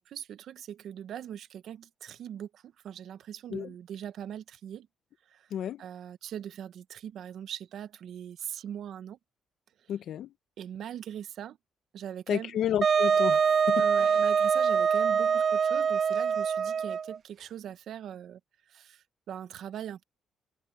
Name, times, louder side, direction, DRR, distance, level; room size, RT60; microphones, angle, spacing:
voice 1, 0.0-4.9 5.3-5.5 5.8-9.2 9.8-9.9 10.6-11.6 11.9-12.6 13.8-18.4 18.7-20.0, right 10 dB, 70° right, 1.1 m, -41 dB
voice 2, 5.5-5.8 9.9-10.3 12.3-14.1, left 10 dB, 70° left, 0.9 m, -32 dB
Wind instrument woodwind instrument, 12.8-17.2, right 6 dB, 50° right, 0.4 m, -24 dB
cardioid pair, 90°, 0 cm